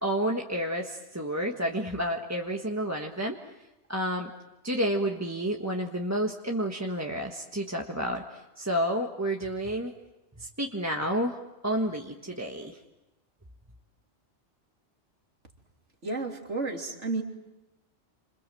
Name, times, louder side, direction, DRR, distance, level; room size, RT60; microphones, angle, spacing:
voice 1, 0.0-3.4 3.9-4.3 4.6-9.9 10.4-12.8, equal, 15° right, 0 dB, 1.5 m, -30 dB
voice 2, 16.0-17.2, right 3 dB, 75° right, 2 dB, 3.4 m, -31 dB
29.0 x 27.0 x 7.7 m, 1.0 s
omnidirectional pair, 1.2 m